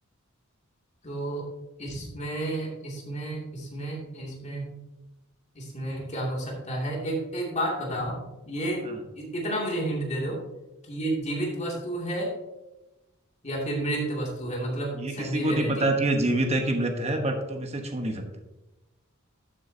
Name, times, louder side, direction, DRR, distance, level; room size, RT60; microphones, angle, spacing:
voice 1, 1.0-1.4 1.8-4.7 5.5-8.2 8.5-8.9 9.1-10.4 10.9-12.3 13.4-15.9, right 1 dB, 35° left, -2 dB, 2.5 m, -31 dB
voice 2, 15.0-18.2, right 1 dB, 30° right, 4 dB, 1.1 m, -26 dB
12.0 x 7.6 x 2.8 m, 1.0 s
head